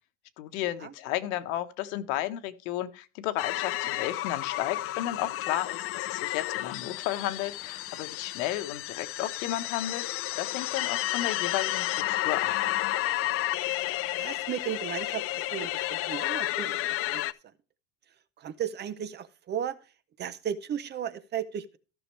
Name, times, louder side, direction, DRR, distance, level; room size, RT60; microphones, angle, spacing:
voice 1, 0.4-12.5, left 13 dB, 85° left, 1.4 m, -33 dB
sound 1, 3.4-17.3, left 16 dB, 35° left, 0.4 m, -31 dB
voice 2, 14.1-15.3 15.5-17.2 18.4-19.9 20.2-21.8, right 9 dB, 25° right, 0.6 m, -35 dB
15.0 x 6.5 x 3.2 m
cardioid pair, 155°, 40 cm